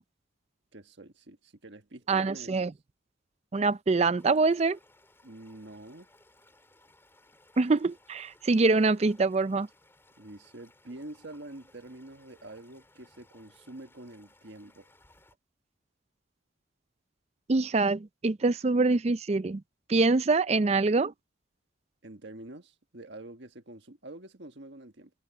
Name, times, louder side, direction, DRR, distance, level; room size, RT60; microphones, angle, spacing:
voice 1, 0.7-2.7 5.2-6.1 10.2-14.9 22.0-25.1, right 2 dB, 60° right, 1.5 m, -46 dB
voice 2, 2.1-2.7 3.5-4.8 7.6-9.7 17.5-19.6 19.9-21.1, right 3 dB, 30° right, 0.4 m, -25 dB
sound 1, 4.2-15.4, left 2 dB, 10° left, 4.7 m, -62 dB
head